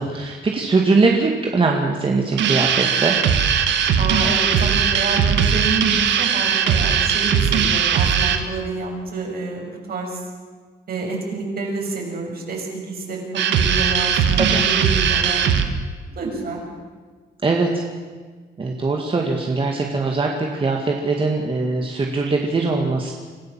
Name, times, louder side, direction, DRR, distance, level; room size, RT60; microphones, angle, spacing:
voice 1, 0.0-3.2 14.5-14.6 17.4-17.8 18.6-23.1, right 3 dB, 30° right, 1 dB, 2.2 m, -21 dB
Distorted Dubstep Drum Loop, 2.4-8.4 13.3-15.7, right 7 dB, 90° right, 1.7 m, -19 dB
voice 2, 4.0-10.2 10.9-15.4 16.1-16.6, right 3 dB, 60° right, 0 dB, 6.7 m, -28 dB
26.5 x 15.0 x 7.6 m, 1.5 s
cardioid pair, 115°, 18 cm